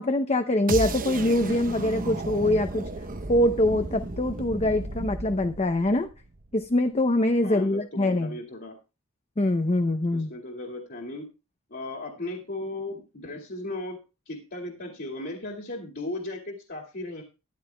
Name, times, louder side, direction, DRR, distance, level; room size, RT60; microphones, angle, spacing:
voice 1, 0.0-2.9 3.3-6.1 6.5-8.4 9.4-10.3, left 1 dB, 30° left, 7 dB, 0.8 m, -24 dB
sound 1, 0.7-6.7, right 2 dB, 40° right, 0.9 m, -34 dB
voice 2, 7.4-8.8 10.1-11.3 11.7-14.0 14.3-17.2, left 2 dB, 50° left, 1 dB, 2.4 m, -36 dB
13.5 x 12.5 x 2.3 m, 0.30 s
head